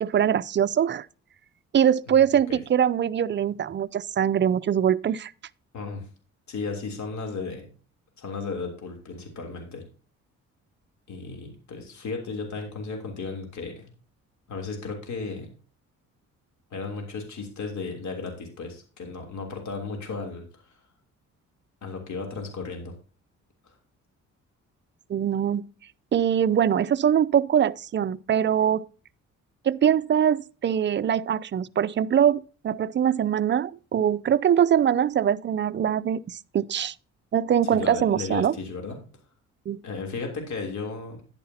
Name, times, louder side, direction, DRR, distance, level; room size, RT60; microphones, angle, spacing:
voice 1, 0.0-1.1 1.7-5.3 25.1-25.6 26.1-28.8 29.6-36.9 37.3-38.5 39.7-39.8, right 9 dB, 40° right, 0.5 m, -23 dB
voice 2, 5.7-6.1 6.5-7.7 8.2-9.8 11.1-13.9 14.5-15.5 16.7-20.8 21.8-22.9 23.6-23.7 37.7-39.0 39.8-41.2, left 4 dB, 65° left, 3.2 m, -35 dB
10.5 x 9.7 x 2.8 m
cardioid pair, 90°, 30 cm